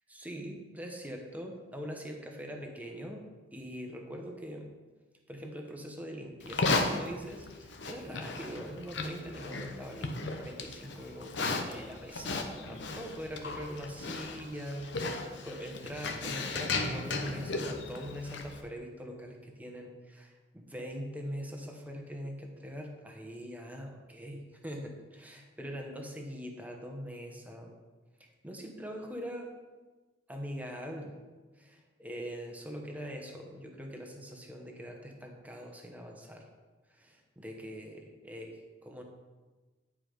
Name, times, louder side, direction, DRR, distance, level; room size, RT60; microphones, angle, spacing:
voice 1, 0.1-3.2 3.5-4.7 5.3-27.7 28.2-29.5 30.3-31.2 31.6-36.4 36.9-39.0, equal, 10° right, 2 dB, 1.1 m, -42 dB
Livestock farm animals working animals, 6.4-18.6, left 3 dB, 75° left, 0.9 m, -35 dB
9.9 x 4.8 x 5.0 m, 1.3 s
head